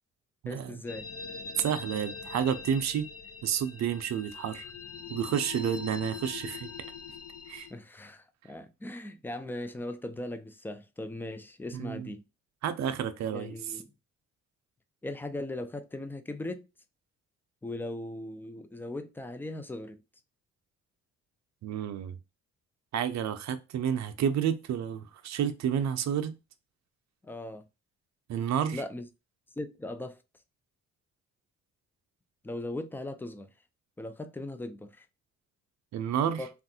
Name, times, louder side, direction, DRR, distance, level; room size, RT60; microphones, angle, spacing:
voice 1, 0.5-1.1 7.7-12.2 13.3-13.9 15.0-16.7 17.6-20.0 27.2-27.6 28.7-29.1 29.6-30.2 32.4-33.5 34.0-35.0 36.4-36.5, left 1 dB, 5° left, 0.4 m, -38 dB
sound 1, 0.9-7.7, left 5 dB, 50° left, 0.6 m, -42 dB
voice 2, 1.6-3.1 3.4-4.6 5.1-6.7 7.5-7.7 11.7-12.1 12.6-13.5 21.6-22.2 22.9-26.3 28.3-28.8 35.9-36.5, right 9 dB, 65° right, 0.6 m, -30 dB
3.3 x 2.4 x 2.7 m
cardioid pair, 90°, 30 cm